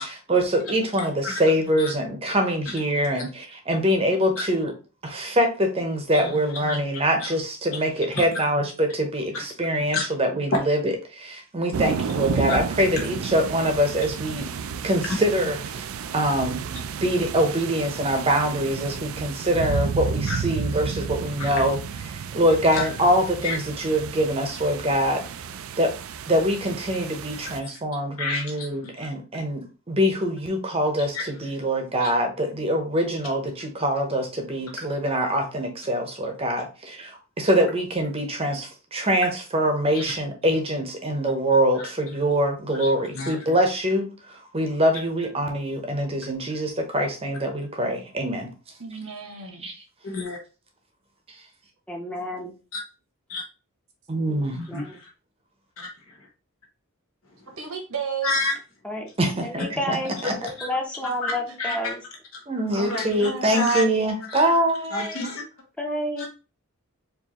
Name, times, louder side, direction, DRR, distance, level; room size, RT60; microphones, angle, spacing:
voice 1, 0.0-4.7 5.0-14.5 14.8-15.9 16.1-16.6 17.0-21.8 22.1-25.3 25.8-26.0 26.2-48.5 49.6-49.7 54.1-54.6 59.2-60.3 62.5-65.2, equal, 25° right, 0.8 m, -24 dB
voice 2, 1.0-1.4 1.8-1.9 4.4-4.5 6.1-6.4 6.7-6.8 7.2-7.3 8.1-8.3 9.3-9.4 9.9-10.0 10.5-10.6 12.5-12.6 13.0-13.1 20.3-20.4 21.4-21.6 22.7-22.9 23.4-23.6 27.6-27.7 28.2-29.1 31.1-31.2 32.0-32.1 39.9-40.0 41.8-41.9 42.7-43.4 50.0-50.4 52.7-52.8 53.3-53.4 54.5-55.1 55.8-56.3 58.2-58.5 60.4-60.7 61.2-61.3 61.6-61.9 62.3-62.4 62.7-63.8 64.2-64.5 64.9-65.4 66.2-66.3, left 2 dB, 75° left, 1.3 m, -29 dB
sound 1, 11.7-27.6, right 6 dB, 70° right, 0.3 m, -32 dB
voice 3, 48.8-49.7 57.5-58.3 60.4-60.5 61.4-61.5 63.2-63.7, right 6 dB, 85° right, 1.1 m, -34 dB
voice 4, 51.9-52.5 54.7-55.0 58.8-59.1 59.4-60.1 60.4-62.0 65.8-66.3, left 1 dB, 5° left, 0.7 m, -30 dB
4.6 x 2.6 x 2.9 m
head